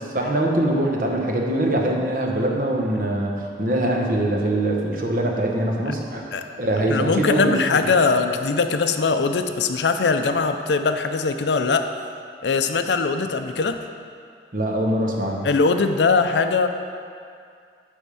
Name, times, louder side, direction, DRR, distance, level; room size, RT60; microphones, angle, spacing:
voice 1, 0.1-6.2 6.6-7.8 14.5-15.5, right 1 dB, 50° right, 0 dB, 1.0 m, -23 dB
voice 2, 6.9-11.9 12.4-13.8 15.4-16.7, left 4 dB, 80° left, 7 dB, 0.5 m, -21 dB
9.9 x 3.6 x 6.8 m, 2.3 s
head